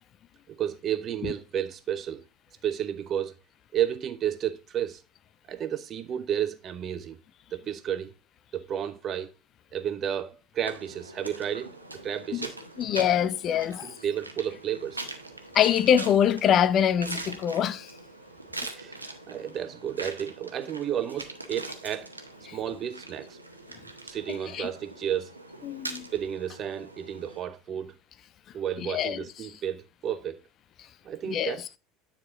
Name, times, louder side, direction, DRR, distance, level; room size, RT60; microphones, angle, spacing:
voice 1, 0.5-2.2 2.6-3.3 3.7-5.0 5.5-7.2 7.5-8.1 8.5-9.3 9.7-12.6 13.8-15.1 18.6-22.1 22.5-23.4 24.0-25.3 26.1-27.9 28.5-30.4 31.0-31.8, right 9 dB, 35° right, 0.8 m, -32 dB
sound 1, 10.7-27.4, right 2 dB, 85° right, 0.8 m, -42 dB
voice 2, 12.8-13.9 15.5-17.9 22.5-22.6 24.5-24.7 25.6-26.1 28.8-29.2 31.3-31.5, left 9 dB, 40° left, 0.4 m, -24 dB
9.5 x 4.3 x 3.7 m
figure-of-eight pair, 70°, 0 cm